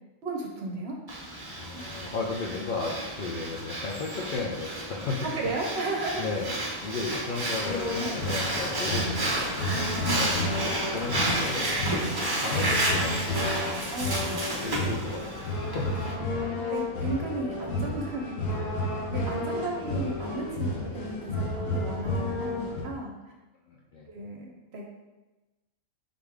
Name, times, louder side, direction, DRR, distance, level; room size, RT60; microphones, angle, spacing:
voice 1, 0.2-1.0 1.7-1.8 5.2-6.3 8.0-8.2 9.8-10.3 13.9-14.4 16.1-16.4 16.7-18.6 19.1-23.1 24.1-24.9, right 2 dB, 60° right, 0 dB, 0.8 m, -34 dB
Breathing, 1.1-16.1, right 1 dB, 30° right, 0.5 m, -32 dB
voice 2, 1.6-5.3 6.2-6.6 6.8-9.8 10.2-13.9 14.6-16.0 23.7-24.1, left 4 dB, 65° left, -3 dB, 0.5 m, -35 dB
sound 1, 7.6-22.8, left 1 dB, 85° left, 1.4 m, -31 dB
4.1 x 3.4 x 3.4 m, 1.1 s
omnidirectional pair, 1.4 m